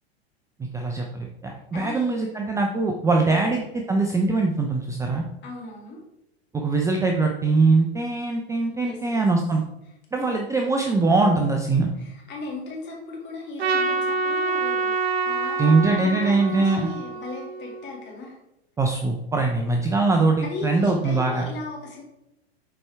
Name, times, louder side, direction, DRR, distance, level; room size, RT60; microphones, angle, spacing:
voice 1, 0.7-3.6 3.9-5.2 6.5-9.6 10.1-11.9 15.6-16.9 18.8-21.4, right 3 dB, 10° right, 1 dB, 0.5 m, -22 dB
voice 2, 1.7-2.2 3.3-3.4 5.4-6.0 8.8-9.2 10.2-10.4 11.7-18.4 20.4-22.0, left 3 dB, 35° left, -2 dB, 2.4 m, -37 dB
Trumpet, 13.6-18.0, right 3 dB, 75° right, 1.0 m, -27 dB
7.6 x 4.4 x 3.3 m, 0.87 s
hypercardioid pair, 110°, 32 cm